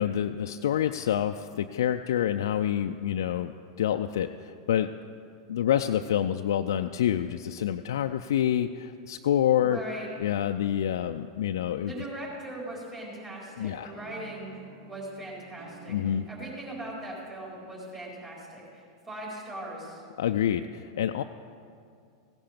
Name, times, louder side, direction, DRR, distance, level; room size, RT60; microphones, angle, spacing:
voice 1, 0.0-3.5 3.8-4.9 5.5-9.8 10.2-11.9 13.6-13.9 15.9-16.3 20.2-21.2, left 10 dB, 70° left, 6 dB, 0.4 m, -27 dB
voice 2, 9.6-10.1 11.8-14.5 14.9-20.0, right 1 dB, 25° right, -6 dB, 4.3 m, -40 dB
sound 1, 13.9-17.5, right 5 dB, 60° right, 4.0 m, -50 dB
16.5 x 10.0 x 5.2 m, 2.3 s
hypercardioid pair, 95°, 2 cm